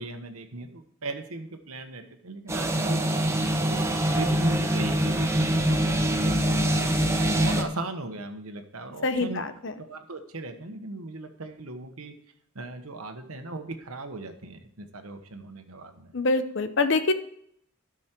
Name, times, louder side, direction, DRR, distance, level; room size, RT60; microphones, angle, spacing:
voice 1, 0.0-3.0 3.5-6.4 6.7-6.8 7.3-9.5 9.9-12.1 12.5-16.1, right 2 dB, 80° right, 6 dB, 1.2 m, -38 dB
sound 1, 2.5-7.6, right 1 dB, 10° right, 0.7 m, -24 dB
voice 2, 9.0-9.7 16.1-17.1, left 3 dB, 55° left, 10 dB, 0.8 m, -25 dB
12.5 x 6.3 x 4.5 m, 0.68 s
head